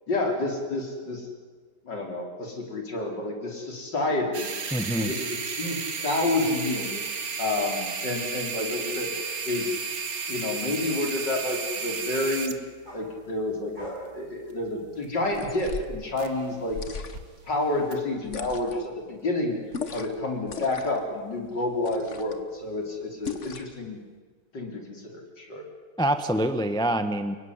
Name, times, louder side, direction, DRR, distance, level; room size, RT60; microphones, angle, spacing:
voice 1, 0.1-1.3 1.8-4.5 5.0-7.0 7.4-9.1 9.4-9.7 10.3-12.6 12.9-16.8 17.5-19.6 19.9-24.0 24.5-25.7, left 2 dB, 60° left, 2 dB, 4.9 m, -29 dB
sound 1, 4.3-16.6 16.9-17.2 17.9-18.0, right 5 dB, 45° right, 2.0 m, -34 dB
voice 2, 4.7-5.1 26.0-27.3, right 1 dB, 5° left, 9 dB, 0.9 m, -25 dB
sound 2, 12.8-15.5 15.9-17.9, equal, 25° right, 7.0 m, -48 dB
sound 3, 15.3-16.0 16.7-17.4 18.2-18.9 19.7-20.2 20.5-21.0 21.8-22.4 23.2-23.8, left 5 dB, 40° left, 1.6 m, -37 dB
29.5 x 18.0 x 9.8 m, 1.6 s
omnidirectional pair, 2.2 m